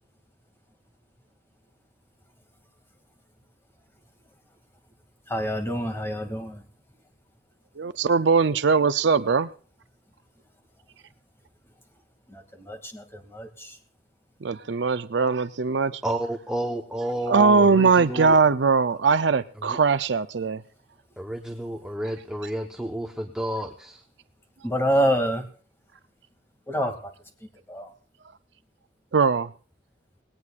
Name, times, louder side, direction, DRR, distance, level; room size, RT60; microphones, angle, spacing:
voice 1, 5.3-6.6 12.3-13.8 24.6-25.4 26.7-26.9 27.7-27.9, equal, 15° left, 4 dB, 2.4 m, -27 dB
voice 2, 7.8-9.5 14.4-16.0 17.3-20.6 29.1-29.5, right 5 dB, 65° right, 12 dB, 0.6 m, -21 dB
voice 3, 16.0-18.4 19.6-19.8 21.2-24.0, right 1 dB, 5° right, 3 dB, 1.1 m, -31 dB
19.5 x 18.0 x 2.5 m, 0.43 s
head